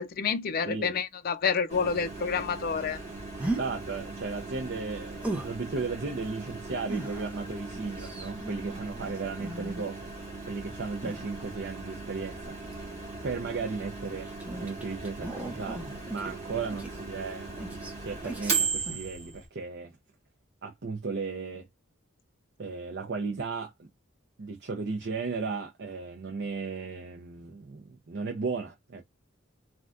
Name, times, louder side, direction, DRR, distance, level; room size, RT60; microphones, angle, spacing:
voice 1, 0.0-3.0, left 6 dB, 50° left, 0.5 m, -29 dB
Microwave oven, 1.7-19.5, right 4 dB, 35° right, 1.2 m, -38 dB
sound 1, 3.4-3.7 5.2-5.6 6.9-10.0 11.0-11.8 12.6-12.9 13.6-17.3 17.6-17.9 18.2-18.6 18.9-19.0, right 2 dB, 5° right, 0.7 m, -38 dB
voice 2, 3.6-10.1 10.5-12.6 13.2-14.3 14.6-20.0 20.6-21.7 22.6-23.9 24.4-29.0, right 4 dB, 60° right, 0.6 m, -35 dB
3.4 x 2.3 x 2.5 m
head